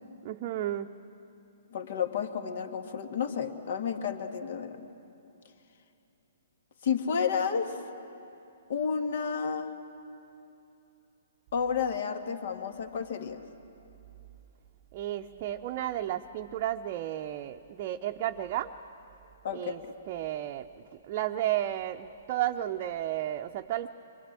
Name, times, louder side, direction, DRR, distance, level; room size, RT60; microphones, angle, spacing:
voice 1, 0.2-0.9 14.9-18.7 19.5-19.8 20.1-23.9, right 12 dB, 40° right, 4 dB, 0.7 m, -33 dB
voice 2, 1.7-4.8 6.8-7.7 8.7-9.7 11.5-13.4 19.4-19.7, left 6 dB, 55° left, 7 dB, 1.9 m, -31 dB
25.0 x 24.0 x 7.6 m, 2.8 s
figure-of-eight pair, 125°, 0 cm